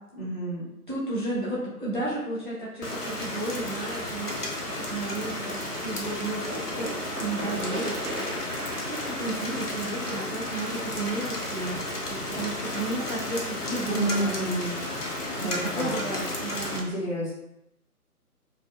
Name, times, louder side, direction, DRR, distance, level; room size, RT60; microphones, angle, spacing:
voice 1, 0.2-0.7 13.9-14.8 15.4-16.0 16.7-17.3, equal, 40° left, -10 dB, 1.3 m, -30 dB
voice 2, 0.9-4.5 4.9-8.6 8.9-14.6 15.4-16.7, right 2 dB, 35° right, -8 dB, 0.5 m, -33 dB
Rain, 2.8-16.8, left 1 dB, 85° left, 0.7 m, -33 dB
sound 1, 6.5-12.1, right 1 dB, 70° right, 1.0 m, -38 dB
2.6 x 2.4 x 2.3 m, 0.82 s
figure-of-eight pair, 155°, 45 cm